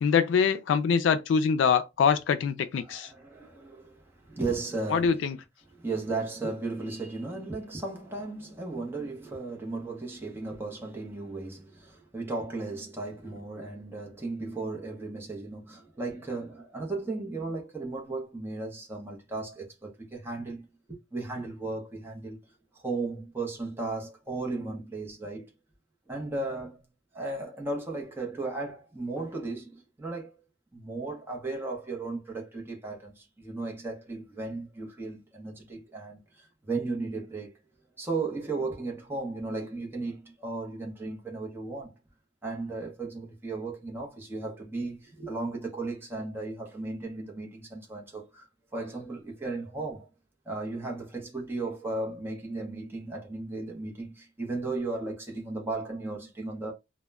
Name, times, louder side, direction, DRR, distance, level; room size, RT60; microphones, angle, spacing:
voice 1, 0.0-3.1 4.9-5.4, left 6 dB, 90° left, 0.3 m, -24 dB
voice 2, 2.8-5.3 5.7-22.4 22.7-25.5 26.1-26.8 27.1-30.4 30.7-37.5 38.0-41.9 42.4-48.5 48.7-50.1 50.5-56.7, right 3 dB, 10° right, 0.6 m, -35 dB
2.1 x 2.1 x 3.3 m
head